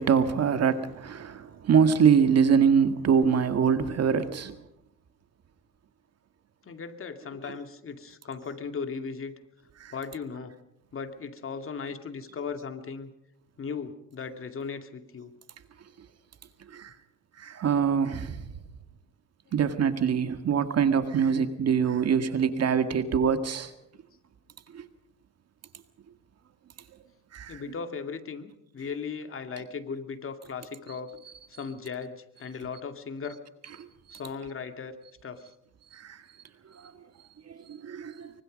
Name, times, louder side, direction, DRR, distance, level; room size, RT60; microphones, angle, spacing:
voice 1, 0.0-4.6 9.8-9.9 16.7-16.9 17.4-18.5 19.5-23.7 24.7-24.8 27.3-27.6 34.1-34.2 35.9-36.2 36.8-36.9 37.5-38.3, right 7 dB, 55° right, 1.9 m, -24 dB
voice 2, 2.2-2.6 6.6-9.3 9.9-10.5 10.9-13.1 13.6-15.3 19.5-19.6 27.5-31.2 31.5-33.4 34.1-35.0 35.2-35.5, left 5 dB, 45° left, 2.5 m, -37 dB
24.5 x 24.5 x 5.3 m
cardioid pair, 90°, 30 cm